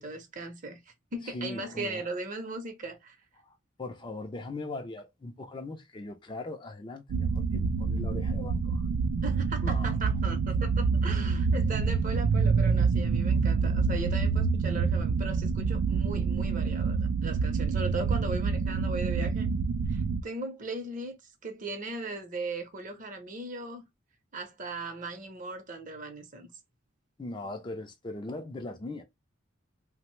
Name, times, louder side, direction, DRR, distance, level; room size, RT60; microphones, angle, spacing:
voice 1, 0.0-3.2 9.2-19.5 19.9-23.8 24.3-26.5, right 2 dB, 40° right, 0.6 m, -38 dB
voice 2, 1.3-2.1 3.4-8.8 9.6-9.9 27.2-29.0, left 2 dB, 25° left, 0.4 m, -40 dB
sound 1, 7.1-20.2, right 5 dB, 75° right, 0.3 m, -27 dB
2.9 x 2.0 x 3.0 m
head